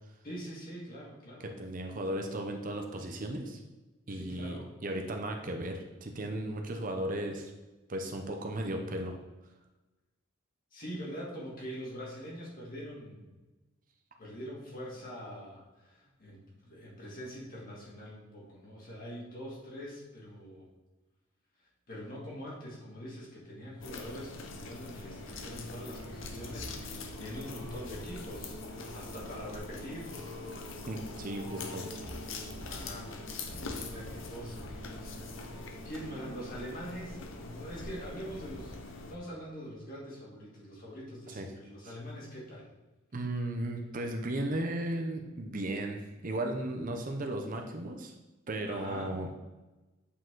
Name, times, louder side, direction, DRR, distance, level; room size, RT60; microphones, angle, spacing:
voice 1, 0.2-1.5 4.1-4.7 10.7-13.3 14.2-20.7 21.9-30.1 32.6-42.6 48.6-49.1, equal, 45° left, -4 dB, 2.2 m, -44 dB
voice 2, 1.4-3.6 4.1-7.5 7.9-9.1 30.9-31.8 41.3-41.5 41.8-41.9 43.1-48.1 48.5-49.3, right 1 dB, 40° right, 4 dB, 0.7 m, -35 dB
sound 1, 23.8-39.2, left 3 dB, 65° left, 0.8 m, -44 dB
sound 2, 24.8-38.1 38.7-39.0 39.2-39.3, equal, 60° right, 1.4 m, -47 dB
8.3 x 5.0 x 3.8 m, 1.1 s
head